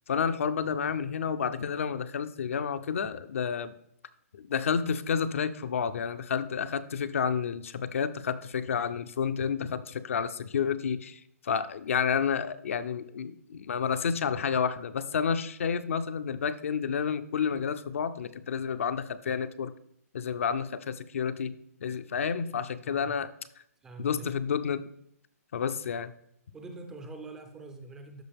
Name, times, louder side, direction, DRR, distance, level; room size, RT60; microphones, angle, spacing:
voice 1, 0.1-3.7 4.3-19.7 20.1-23.3 24.0-24.9 25.5-26.1, left 7 dB, 55° left, 11 dB, 0.5 m, -30 dB
voice 2, 22.8-23.2 23.8-24.3 26.5-28.2, right 3 dB, 5° right, 7 dB, 0.4 m, -44 dB
12.5 x 4.7 x 3.4 m, 0.72 s
hypercardioid pair, 170°, 8 cm